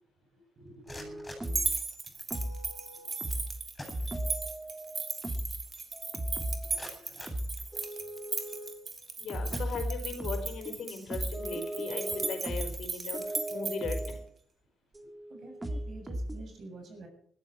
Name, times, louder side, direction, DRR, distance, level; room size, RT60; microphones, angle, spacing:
voice 1, 0.3-1.2 6.9-7.2 15.3-17.1, right 2 dB, 60° right, 4 dB, 7.4 m, -49 dB
sound 1, 0.7-2.4 3.3-3.4 3.7-4.6 5.0-5.1 5.7-5.8 6.3-8.2 8.8-9.0 9.5-10.3, left 1 dB, 15° left, 7.4 m, -49 dB
sound 2, 0.9-1.8 2.3-3.6 3.9-5.6 5.9-6.9 7.3-8.9 9.3-14.2 14.9-16.4, right 1 dB, 20° right, 3.0 m, -37 dB
sound 3, 1.4-14.1, right 4 dB, 35° right, 2.8 m, -37 dB
voice 2, 9.2-14.2, left 5 dB, 70° left, 6 dB, 4.4 m, -38 dB
20.0 x 13.0 x 4.7 m, 0.64 s
cardioid pair, 90°, 0 cm